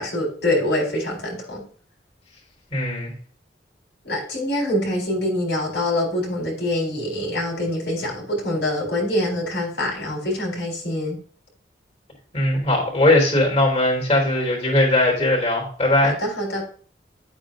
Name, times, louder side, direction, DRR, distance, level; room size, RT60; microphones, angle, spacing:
voice 1, 0.0-1.6 4.0-11.2 16.0-16.6, left 1 dB, 75° left, 4.5 m, -25 dB
voice 2, 2.7-3.1 12.3-16.2, left 1 dB, 35° left, 3.8 m, -19 dB
10.0 x 8.5 x 2.6 m
head